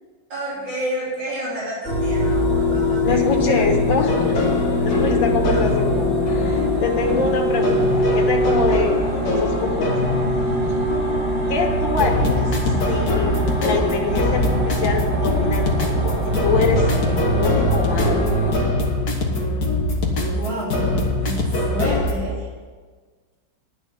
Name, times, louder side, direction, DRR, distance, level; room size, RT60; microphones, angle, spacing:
voice 1, 0.3-3.7 5.5-5.8 12.8-12.9 20.3-22.5, right 1 dB, 75° right, -9 dB, 4.2 m, -30 dB
sound 1, 1.8-18.5, equal, 25° right, 4.1 m, -22 dB
voice 2, 3.0-4.3 4.8-9.9 11.5-18.5, left 4 dB, 85° left, 3 dB, 2.2 m, -25 dB
sound 2, 3.8-22.1, left 2 dB, 60° left, 2.0 m, -24 dB
11.0 x 6.0 x 8.5 m, 1.5 s
omnidirectional pair, 2.0 m